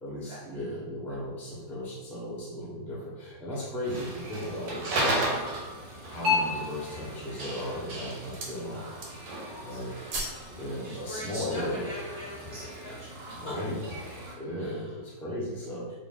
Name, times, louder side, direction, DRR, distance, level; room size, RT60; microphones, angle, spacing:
voice 1, 0.0-5.3 6.0-8.9 9.6-9.9 10.6-11.9 13.4-13.8 14.4-15.9, equal, ahead, -7 dB, 0.5 m, -36 dB
sound 1, 3.8-14.3, left 1 dB, 80° right, 1.5 m, -34 dB
sound 2, 4.4-4.7 5.3-5.4 5.9-6.4 7.1-7.5 7.8-8.6 8.9-9.4 9.7-10.5 10.8-10.9, right 1 dB, 60° right, 1.0 m, -39 dB
voice 2, 9.5-9.8 10.4-13.9 14.6-14.9, left 1 dB, 55° left, -8 dB, 0.7 m, -42 dB
3.4 x 2.5 x 3.8 m, 1.2 s
omnidirectional pair, 2.1 m